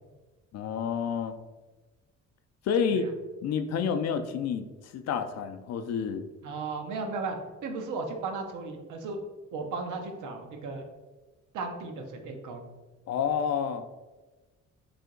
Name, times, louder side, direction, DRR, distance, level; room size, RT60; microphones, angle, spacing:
voice 1, 0.5-1.3 2.6-3.1 3.4-6.2 13.1-13.8, left 6 dB, 60° left, 9 dB, 0.4 m, -29 dB
voice 2, 6.4-7.4 7.6-9.2 9.5-10.9 11.5-12.6, right 4 dB, 80° right, 4 dB, 0.7 m, -35 dB
3.4 x 2.8 x 3.7 m, 1.2 s
cardioid pair, 90°, 30 cm